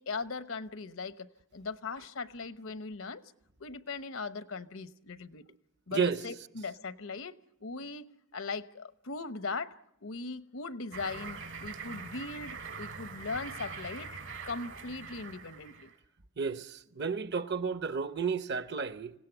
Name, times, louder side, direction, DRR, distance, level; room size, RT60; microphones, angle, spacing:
voice 1, 0.0-3.2 3.6-5.4 5.9-7.3 7.6-8.1 8.3-9.7 10.0-14.1 14.5-15.9, left 4 dB, 80° left, 0.9 m, -39 dB
sound 1, 10.9-16.0, right 5 dB, 80° right, 3.3 m, -43 dB
voice 2, 16.4-19.1, right 5 dB, 55° right, 0.9 m, -32 dB
26.0 x 17.5 x 8.0 m
head